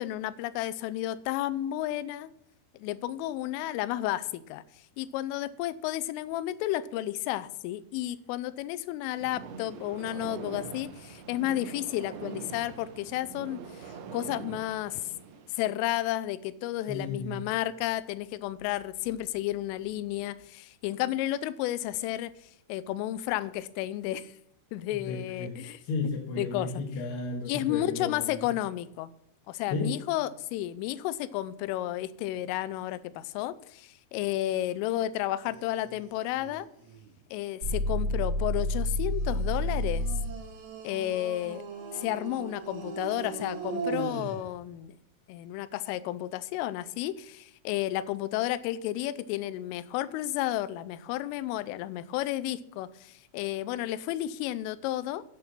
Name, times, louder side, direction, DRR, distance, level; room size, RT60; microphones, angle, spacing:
voice 1, 0.0-2.3 2.8-4.6 5.0-15.1 15.5-22.3 22.7-24.3 24.7-25.8 26.4-26.8 27.4-29.1 29.5-36.7 37.3-40.1 40.8-41.6 41.9-45.0 45.3-55.2, left 14 dB, 85° left, 16 dB, 3.1 m, -32 dB
sound 1, 9.2-15.6, right 5 dB, 75° right, 3.0 m, -43 dB
voice 2, 16.9-17.4 24.9-28.5 29.7-29.9, left 3 dB, 65° left, -1 dB, 3.2 m, -34 dB
sound 2, 35.5-37.2 39.1-44.5, right 5 dB, 55° right, 3.5 m, -39 dB
sound 3, 37.6-40.4, equal, 30° right, 1.0 m, -29 dB
9.7 x 8.7 x 6.0 m, 0.73 s
omnidirectional pair, 5.7 m